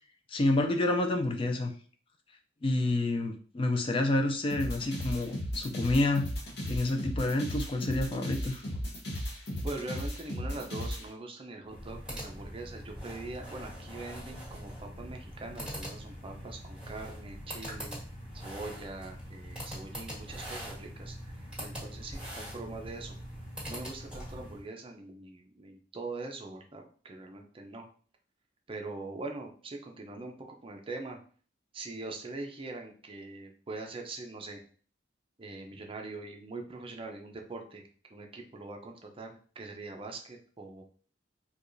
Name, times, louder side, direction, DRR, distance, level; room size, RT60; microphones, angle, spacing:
voice 1, 0.3-1.7 2.6-6.3 6.7-8.6, left 2 dB, 30° left, 5 dB, 0.3 m, -28 dB
sound 1, 4.5-11.0, equal, 60° left, 1.1 m, -35 dB
voice 2, 9.6-18.0 18.3-23.2 23.6-27.9 28.7-30.3 30.6-31.2 31.7-34.6 35.4-37.8 38.1-40.8, right 2 dB, 30° right, 3 dB, 0.5 m, -42 dB
sound 2, 11.6-24.6, equal, 5° right, 1.7 m, -42 dB
4.6 x 2.3 x 2.6 m, 0.43 s
head